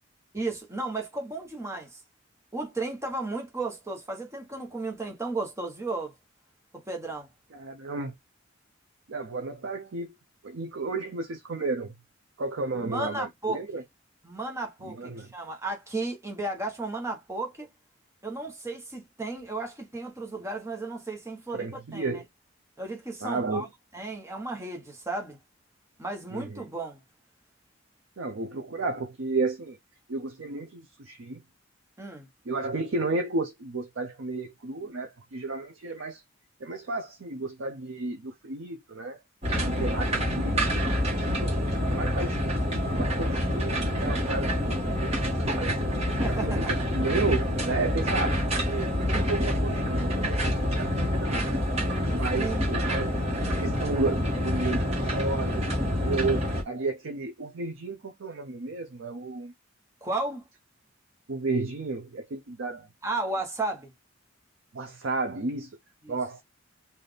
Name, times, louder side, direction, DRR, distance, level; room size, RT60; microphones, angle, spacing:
voice 1, 0.3-2.0 2.5-6.1 6.7-7.3 12.8-13.6 14.2-17.7 18.2-22.2 22.8-23.7 23.9-25.4 26.0-27.0 32.0-32.3 46.2-46.6 52.4-53.1 60.0-60.4 63.0-63.9 66.0-66.2, right 2 dB, 15° right, 1.2 m, -34 dB
voice 2, 7.5-8.1 9.1-10.1 10.4-11.9 12.4-13.8 14.8-15.3 21.5-22.2 23.2-23.7 26.3-26.7 28.2-29.8 30.1-31.4 32.5-36.2 36.6-39.2 39.6-42.6 42.9-45.2 45.6-45.8 46.2-51.6 52.1-53.1 53.5-55.7 56.0-59.5 61.3-62.9 64.7-65.7 66.1-66.4, right 3 dB, 70° right, 0.6 m, -33 dB
sound 1, 39.4-56.6, equal, 30° right, 1.4 m, -27 dB
4.0 x 2.6 x 3.4 m
head